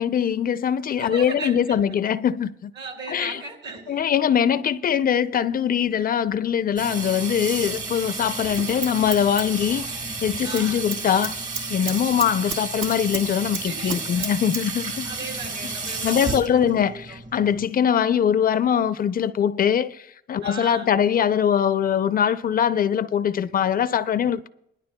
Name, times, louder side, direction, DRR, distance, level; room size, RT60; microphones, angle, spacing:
voice 1, 0.0-2.7 3.1-3.4 3.9-11.3 11.7-15.1 16.0-24.5, left 8 dB, 45° left, 0.4 m, -22 dB
voice 2, 1.0-2.0 2.7-4.1 10.4-10.9 13.6-14.3 15.0-16.6 16.9-17.2 20.4-20.9, right 3 dB, 65° right, 3.1 m, -37 dB
Water tap faucet / Sink (filling or washing), 6.8-17.7, right 3 dB, 40° right, 1.6 m, -32 dB
Scissors, 8.2-10.2 10.4-10.7 10.9-13.2 13.5-14.6 14.9-15.0, right 5 dB, 80° right, 1.4 m, -32 dB
21.0 x 11.5 x 2.2 m
cardioid pair, 90°, 20 cm